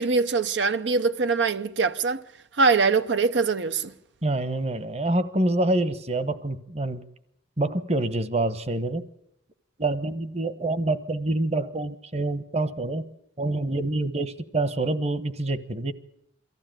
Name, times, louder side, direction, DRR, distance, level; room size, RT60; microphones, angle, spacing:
voice 1, 0.0-2.2 2.6-3.9, right 4 dB, 75° right, 0.7 m, -23 dB
voice 2, 4.2-7.0 7.6-9.0 9.8-13.1 13.4-15.9, right 2 dB, 35° right, 1.1 m, -26 dB
23.5 x 15.0 x 9.1 m
head